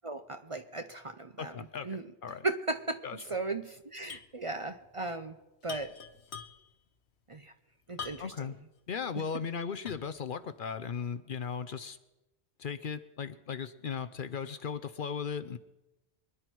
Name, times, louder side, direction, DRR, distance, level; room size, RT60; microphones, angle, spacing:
voice 1, 0.0-2.1 2.4-3.0 3.3-5.4 5.6-5.9 7.3-7.5 7.9-8.6, right 3 dB, 35° right, 8 dB, 0.7 m, -36 dB
voice 2, 1.4-1.9 2.2-2.4 3.0-3.2 8.2-8.6 8.9-12.0 12.6-15.6, left 6 dB, 55° left, 10 dB, 0.8 m, -37 dB
sound 1, 4.1-4.4 4.6-4.7 5.6-6.8 8.0-8.5 9.0-9.1 9.9-10.2, left 6 dB, 80° left, 1.3 m, -44 dB
25.0 x 10.0 x 4.6 m, 0.99 s
omnidirectional pair, 1.1 m